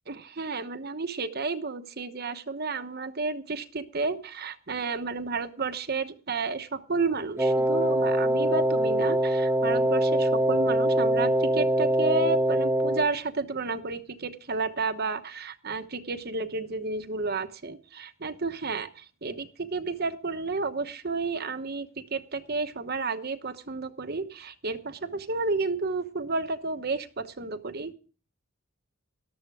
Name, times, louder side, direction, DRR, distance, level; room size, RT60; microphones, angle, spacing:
voice 1, 0.1-27.9, right 3 dB, 50° right, 9 dB, 1.0 m, -31 dB
Wind instrument woodwind instrument, 7.4-13.1, right 1 dB, 10° right, 0.6 m, -23 dB
13.5 x 12.5 x 4.8 m, 0.38 s
head